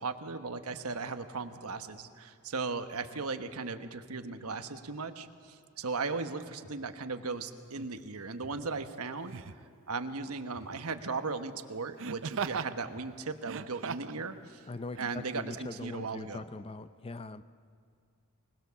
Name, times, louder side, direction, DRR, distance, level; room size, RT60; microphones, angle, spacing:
voice 1, 0.0-9.4 9.9-14.6 15.0-16.5, right 4 dB, 80° right, 8 dB, 1.2 m, -37 dB
sound 1, 5.7-7.2 8.2-9.1 9.4-9.5 10.5-11.4 11.7-11.8 12.6-12.7 12.9-13.3 14.6-14.7 14.9-15.5, equal, 50° left, 3.0 m, -58 dB
Laughter, 7.8-7.9 9.3-9.6 12.0-12.7 13.4-14.2 14.9-15.1, right 6 dB, 60° right, 0.7 m, -37 dB
voice 2, 14.7-17.4, left 3 dB, 25° left, 13 dB, 0.5 m, -41 dB
25.5 x 19.5 x 7.0 m, 2.4 s
head